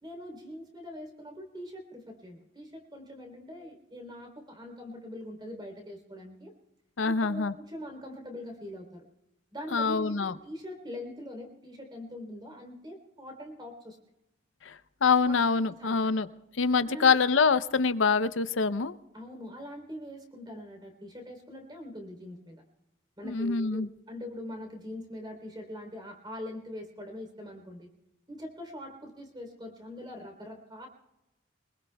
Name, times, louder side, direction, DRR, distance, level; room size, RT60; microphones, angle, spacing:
voice 1, 0.0-6.5 7.0-9.0 9.5-14.0 15.2-15.4 15.8-16.1 16.8-17.1 19.1-22.6 23.2-27.9 28.3-30.9, left 1 dB, 20° right, 4 dB, 3.4 m, -43 dB
voice 2, 7.0-7.5 9.7-10.4 14.6-16.3 16.6-19.0 23.2-23.9, left 5 dB, 75° left, 13 dB, 0.7 m, -25 dB
24.5 x 21.0 x 2.3 m, 0.93 s
head